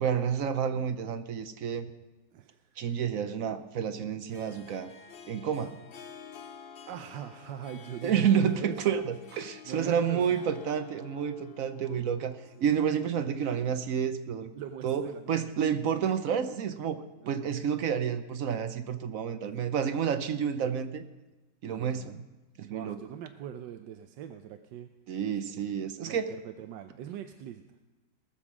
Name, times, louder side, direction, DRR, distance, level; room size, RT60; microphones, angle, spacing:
voice 1, 0.0-1.9 2.8-4.9 5.3-5.8 8.0-14.5 14.8-21.0 21.6-22.2 22.6-23.0 25.1-26.3, right 8 dB, 60° right, 10 dB, 1.0 m, -30 dB
voice 2, 2.3-2.9 6.9-9.0 9.6-10.4 12.6-12.7 14.5-15.5 17.2-17.6 21.7-22.2 22.6-24.9 26.0-27.8, right 10 dB, 90° right, 7 dB, 1.3 m, -42 dB
Harp, 2.9-13.3, left 6 dB, 55° left, 0.6 m, -51 dB
19.0 x 7.2 x 6.1 m, 1.1 s
omnidirectional pair, 1.9 m